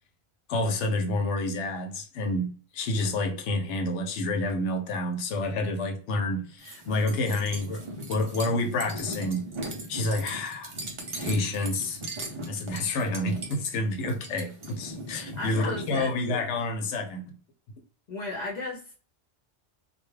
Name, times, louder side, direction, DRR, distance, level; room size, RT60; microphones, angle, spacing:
voice 1, 0.5-7.8 8.1-9.5 9.9-10.7 11.2-12.0 12.5-17.3, left 2 dB, 90° left, 0.9 m, -29 dB
sound 1, 6.6-16.1, right 1 dB, 40° right, 0.4 m, -38 dB
voice 2, 15.4-16.6 18.1-19.0, left 2 dB, 50° left, 0.6 m, -35 dB
2.2 x 2.2 x 3.1 m
omnidirectional pair, 1.2 m